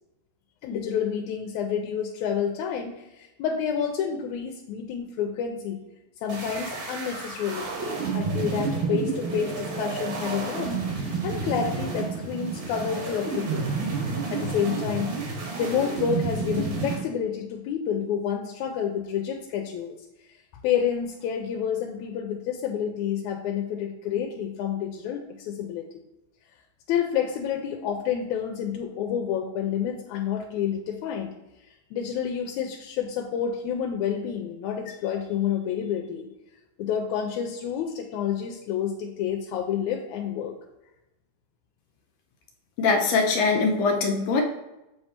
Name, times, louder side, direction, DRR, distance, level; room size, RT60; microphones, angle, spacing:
voice 1, 0.6-5.8 6.2-7.7 8.1-13.7 14.3-15.1 15.6-20.0 20.6-25.9 26.9-31.3 31.9-36.3 36.8-40.6, left 8 dB, 90° left, 2 dB, 2.0 m, -29 dB
sound 1, 6.3-17.0, right 4 dB, 80° right, 3.1 m, -30 dB
voice 2, 42.8-44.4, left 4 dB, 75° left, 3 dB, 1.7 m, -22 dB
7.4 x 3.3 x 4.3 m, 0.94 s
omnidirectional pair, 3.3 m